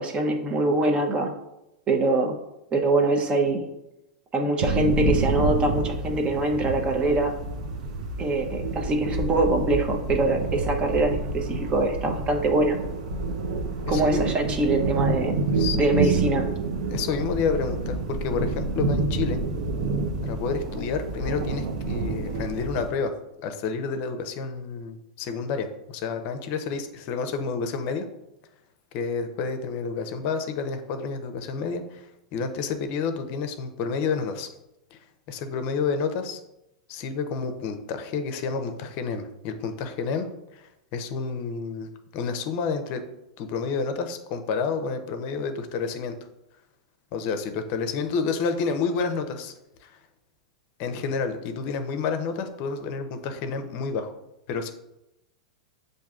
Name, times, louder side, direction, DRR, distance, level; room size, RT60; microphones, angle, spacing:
voice 1, 0.0-1.3 1.9-2.4 2.7-3.6 4.3-7.3 8.2-12.8 13.9-15.4 15.7-16.5, right 2 dB, 30° right, 3 dB, 0.7 m, -23 dB
sound 1, 4.6-22.9, right 3 dB, 70° right, 0.7 m, -28 dB
voice 2, 13.9-14.2 15.5-16.1 16.9-19.4 20.2-23.1 23.4-28.0 28.9-34.5 34.9-35.0 35.3-36.4 36.9-40.3 40.5-43.0 43.4-46.2 47.1-49.5 49.8-50.0 50.8-54.1 54.5-54.7, left 5 dB, 50° left, 8 dB, 0.6 m, -29 dB
7.2 x 2.6 x 2.4 m, 0.90 s
hypercardioid pair, 105°, 4 cm